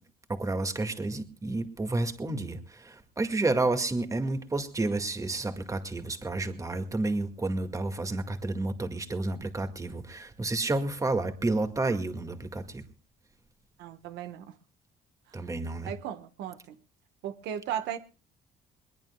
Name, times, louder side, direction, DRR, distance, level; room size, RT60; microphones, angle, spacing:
voice 1, 0.3-12.8 15.3-15.9, right 2 dB, 20° right, 2.0 m, -30 dB
voice 2, 13.8-14.5 15.3-15.4 15.8-16.8 17.2-18.0, right 10 dB, 85° right, 1.4 m, -36 dB
22.0 x 21.0 x 2.3 m
cardioid pair, 110°, 17 cm